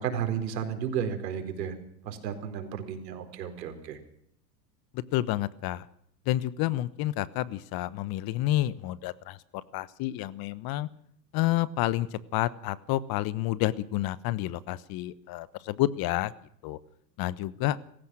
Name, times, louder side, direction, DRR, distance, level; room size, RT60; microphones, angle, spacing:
voice 1, 0.0-1.7 2.0-4.0, right 8 dB, 80° right, 6 dB, 4.5 m, -33 dB
voice 2, 4.9-5.9 6.3-10.9 11.3-16.3 16.6-16.8 17.2-17.8, left 15 dB, 45° left, 17 dB, 1.2 m, -29 dB
27.0 x 15.5 x 6.3 m, 0.67 s
hypercardioid pair, 95°, 49 cm